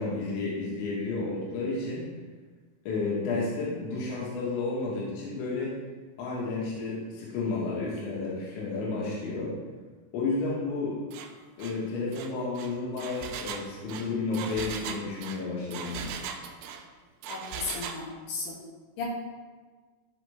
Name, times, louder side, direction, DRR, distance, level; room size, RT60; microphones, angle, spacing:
voice 1, 0.0-2.1 2.9-5.7 6.2-9.6 10.1-11.0 11.6-16.1, left 3 dB, 75° left, -6 dB, 4.1 m, -31 dB
Engine, 11.1-11.3 11.6-11.8 12.1-16.9 17.2-18.0, right 7 dB, 85° right, 2.2 m, -39 dB
voice 2, 17.3-18.6 19.0-19.1, left 4 dB, 90° left, -6 dB, 4.6 m, -35 dB
15.0 x 5.0 x 3.6 m, 1.4 s
omnidirectional pair, 5.4 m